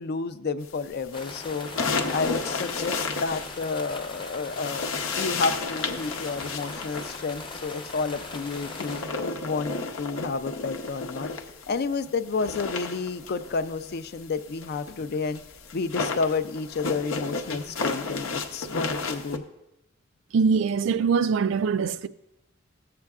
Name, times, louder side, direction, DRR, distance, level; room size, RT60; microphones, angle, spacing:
voice 1, 0.0-1.7 2.1-4.9 5.2-9.0 9.4-11.3 11.7-15.4 15.7-19.4, left 4 dB, 50° left, 0.4 m, -30 dB
sound 1, 0.9-4.1 4.5-11.8 12.1-19.4, left 4 dB, 85° left, 0.7 m, -32 dB
sound 2, 1.1-9.0, left 3 dB, 25° left, 0.8 m, -40 dB
voice 2, 20.3-22.1, right 5 dB, 65° right, 0.3 m, -23 dB
15.0 x 7.6 x 2.4 m
head